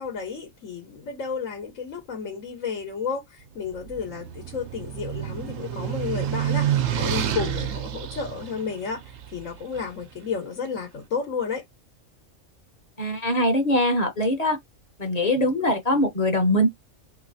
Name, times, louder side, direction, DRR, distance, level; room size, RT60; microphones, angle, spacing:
voice 1, 0.0-11.6, left 5 dB, 75° left, 1.3 m, -32 dB
sound 1, 3.7-9.9, right 10 dB, 85° right, 1.1 m, -29 dB
voice 2, 13.0-14.6 15.0-16.7, left 1 dB, 35° left, 0.8 m, -22 dB
3.1 x 3.0 x 2.6 m
omnidirectional pair, 1.3 m